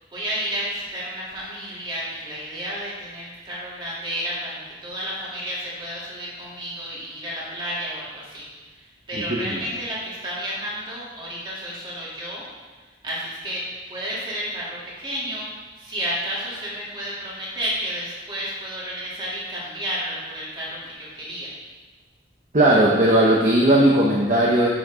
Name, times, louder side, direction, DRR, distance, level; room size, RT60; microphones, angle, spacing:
voice 1, 0.1-8.5 8.7-12.4 13.0-15.4 15.7-21.5, equal, 25° right, -7 dB, 3.0 m, -31 dB
voice 2, 9.1-9.6 22.5-24.7, right 1 dB, 45° right, -3 dB, 1.0 m, -17 dB
9.9 x 8.2 x 3.8 m, 1.3 s
head